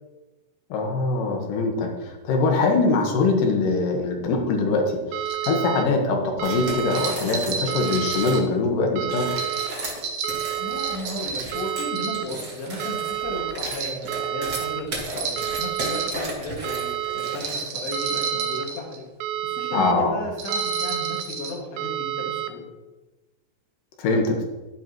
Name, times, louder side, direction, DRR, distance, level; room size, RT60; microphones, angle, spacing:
voice 1, 0.7-9.4 19.7-20.1 24.0-24.4, left 3 dB, 65° left, 2 dB, 2.7 m, -23 dB
sound 1, 5.1-5.8 6.4-7.1 7.7-8.4 9.0-9.7 10.2-11.0 11.5-12.2 12.8-13.5 14.1-14.8 15.4-16.1 16.6-17.4 17.9-18.7 19.2-19.9 20.5-21.2 21.8-22.5, right 12 dB, 85° right, 2.1 m, -29 dB
sound 2, 5.3-5.6 6.9-8.4 9.3-11.6 12.0-12.6 13.5-14.0 15.1-16.2 17.3-19.0 20.4-21.5, right 5 dB, 65° right, 2.1 m, -31 dB
sound 3, 6.4-8.4 9.0-17.9, right 2 dB, 45° right, 1.4 m, -35 dB
voice 2, 10.6-19.1 19.4-22.6, left 1 dB, 85° left, -1 dB, 4.1 m, -35 dB
11.5 x 10.5 x 3.0 m, 1.1 s
omnidirectional pair, 4.7 m